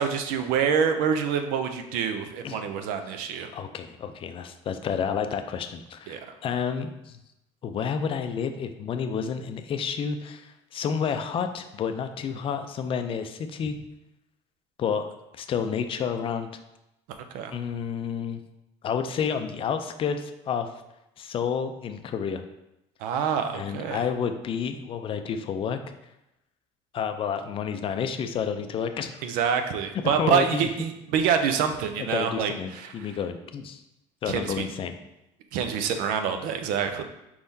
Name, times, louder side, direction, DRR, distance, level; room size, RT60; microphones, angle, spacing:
voice 1, 0.0-3.5 6.1-6.2 17.3-17.6 23.0-24.0 29.2-33.1 34.3-34.7 35.5-37.0, right 7 dB, 80° right, 7 dB, 0.5 m, -26 dB
voice 2, 3.5-7.2 7.6-13.8 14.8-15.1 15.3-16.5 17.5-18.4 18.8-20.7 21.2-22.4 23.5-25.8 26.9-29.2 30.2-30.6 32.0-33.8 34.2-35.0, left 7 dB, 40° left, 8 dB, 0.4 m, -30 dB
4.6 x 3.6 x 2.7 m, 0.89 s
cardioid pair, 105°, 14 cm